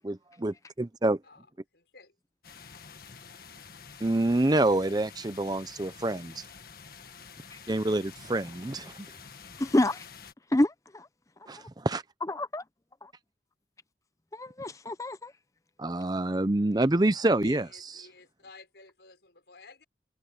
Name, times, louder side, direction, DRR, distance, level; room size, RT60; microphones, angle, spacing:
voice 1, 0.0-1.2 4.0-6.5 7.7-9.1 11.5-12.0 15.8-17.7, right 2 dB, 25° right, 0.6 m, -27 dB
voice 2, 1.7-2.1 17.4-19.8, left 3 dB, 70° left, 5.7 m, -52 dB
sound 1, 2.4-10.3, left 6 dB, 55° left, 1.6 m, -49 dB
voice 3, 9.6-10.0 10.5-11.1 12.4-12.6 13.0-13.1 14.3-15.3, left 1 dB, 20° left, 0.6 m, -27 dB
head